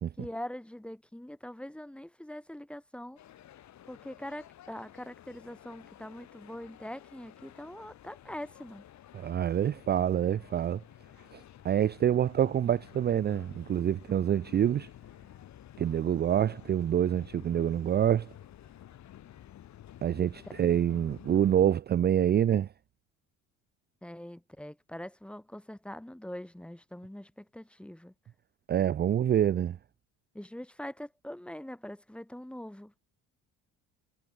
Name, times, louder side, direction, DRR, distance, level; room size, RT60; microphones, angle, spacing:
voice 1, 0.2-3.2 3.9-8.8 24.0-28.1 30.3-32.9, left 1 dB, 5° left, 1.2 m, -43 dB
sound 1, 3.2-21.8, left 12 dB, 55° left, 2.7 m, -52 dB
voice 2, 9.1-10.8 11.3-14.9 15.8-18.3 20.0-22.7 28.7-29.8, right 10 dB, 30° right, 0.5 m, -26 dB
cardioid pair, 100°, 34 cm